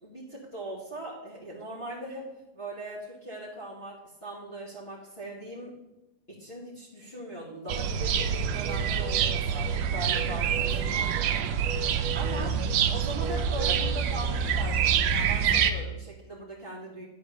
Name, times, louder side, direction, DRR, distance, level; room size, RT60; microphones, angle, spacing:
voice 1, 0.0-2.3 2.5-5.8 6.3-11.5 12.1-12.6 12.9-17.0, right 1 dB, 30° left, -8 dB, 2.3 m, -40 dB
sound 1, 7.7-15.7, right 7 dB, 70° right, 1.1 m, -26 dB
10.5 x 4.7 x 6.9 m, 0.95 s
omnidirectional pair, 2.1 m